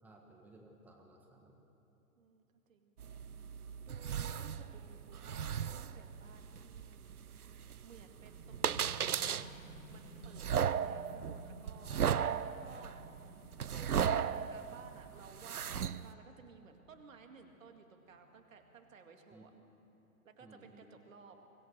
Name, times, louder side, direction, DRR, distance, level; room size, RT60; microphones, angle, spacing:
voice 1, 0.0-1.6 19.3-19.4 20.4-20.9, right 2 dB, 5° right, 0 dB, 1.7 m, -58 dB
voice 2, 2.2-3.0 3.8-9.5 9.9-19.5 20.2-21.4, right 5 dB, 60° right, 5 dB, 2.3 m, -57 dB
sound 1, 3.0-16.1, right 8 dB, 85° right, 0.7 m, -37 dB
sound 2, 8.1-19.4, equal, 65° left, 5.8 m, -56 dB
24.0 x 18.0 x 6.6 m, 3.0 s
figure-of-eight pair, 125°, 44 cm